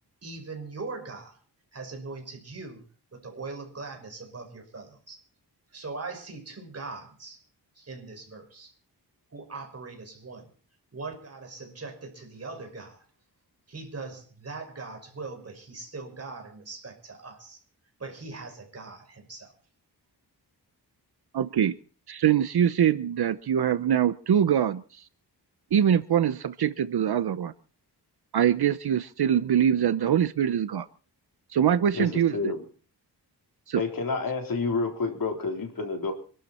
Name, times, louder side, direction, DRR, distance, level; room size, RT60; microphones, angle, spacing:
voice 1, 0.2-1.4 1.7-2.8 3.1-5.2 5.7-7.4 7.8-8.7 9.3-10.5 10.9-13.0 13.7-17.6 18.0-19.5, right 3 dB, 35° right, 3 dB, 5.9 m, -40 dB
voice 2, 21.3-21.7 22.1-24.8 25.7-27.5 28.3-30.9 31.5-32.4 33.7-33.8, right 9 dB, 70° right, 14 dB, 0.8 m, -23 dB
voice 3, 31.9-32.6 33.8-36.1, left 4 dB, 55° left, 3 dB, 3.9 m, -29 dB
26.0 x 12.5 x 4.3 m, 0.41 s
wide cardioid pair, 165°, 41 cm